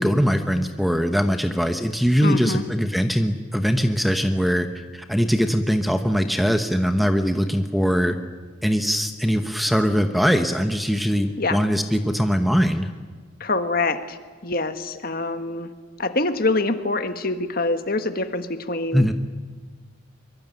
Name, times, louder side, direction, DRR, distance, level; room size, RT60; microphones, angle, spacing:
voice 1, 0.0-4.7 4.9-8.2 8.6-12.9 18.9-19.1, equal, ahead, 7 dB, 1.0 m, -21 dB
voice 2, 2.2-2.6 11.4-11.6 13.4-15.7 16.0-19.1, left 2 dB, 45° left, 9 dB, 1.5 m, -25 dB
23.5 x 23.0 x 9.1 m, 1.4 s
head